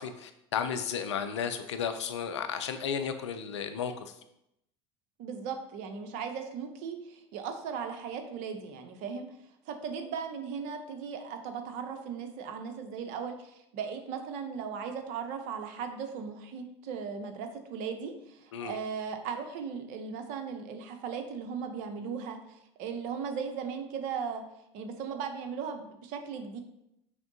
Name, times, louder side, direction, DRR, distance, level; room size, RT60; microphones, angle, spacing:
voice 1, 0.0-4.1 18.5-18.8, left 7 dB, 90° left, 8 dB, 0.4 m, -33 dB
voice 2, 5.2-9.3 9.7-24.4 24.7-26.6, right 6 dB, 60° right, 7 dB, 0.7 m, -37 dB
5.0 x 3.4 x 2.7 m, 0.81 s
hypercardioid pair, 80°, 14 cm